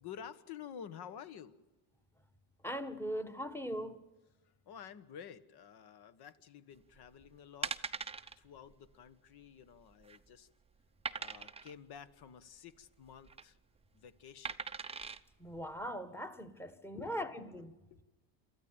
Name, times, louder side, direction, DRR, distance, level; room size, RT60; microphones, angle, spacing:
voice 1, 0.0-1.6 4.4-7.9 8.4-10.5 11.2-13.6 13.9-14.6 16.9-17.3 17.9-18.0, left 8 dB, 50° left, 1.4 m, -51 dB
voice 2, 2.6-4.1 15.4-17.8, equal, 5° left, 1.4 m, -40 dB
sound 1, 7.0-7.1 7.6-8.3 8.7-8.9 9.1-9.2 9.8-10.3 11.0-11.7 13.1-13.4 14.4-15.2 15.8-15.9, right 5 dB, 15° right, 0.7 m, -41 dB
27.5 x 13.5 x 8.8 m
supercardioid pair, 100°, 48 cm